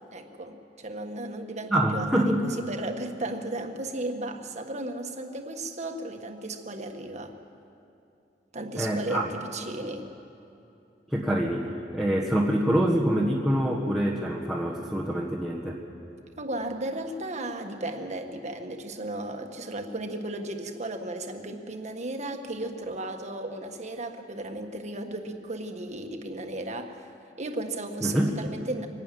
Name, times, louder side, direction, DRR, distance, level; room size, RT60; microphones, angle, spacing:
voice 1, 0.0-7.3 8.5-10.1 16.4-27.1 27.4-28.9, right 2 dB, 40° right, 5 dB, 1.6 m, -35 dB
voice 2, 1.7-2.4 8.8-9.2 11.1-11.7 11.9-15.8 28.0-28.3, right 1 dB, ahead, -2 dB, 1.5 m, -25 dB
24.0 x 12.0 x 9.3 m, 2.8 s
head